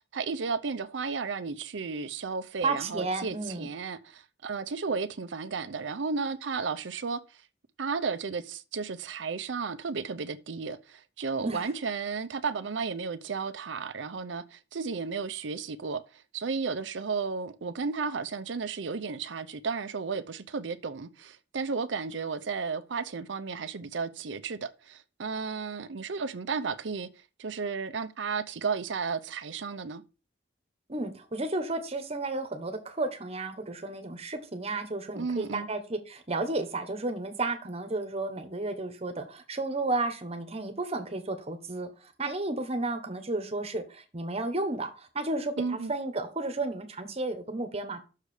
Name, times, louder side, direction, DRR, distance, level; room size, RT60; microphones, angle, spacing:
voice 1, 0.0-7.2 7.8-27.1 27.4-30.0 35.2-35.7 45.6-45.9, right 5 dB, 85° right, 0.6 m, -33 dB
voice 2, 2.6-3.7 11.4-11.7 30.9-48.0, right 2 dB, 35° right, 1.2 m, -32 dB
6.6 x 4.8 x 6.5 m
head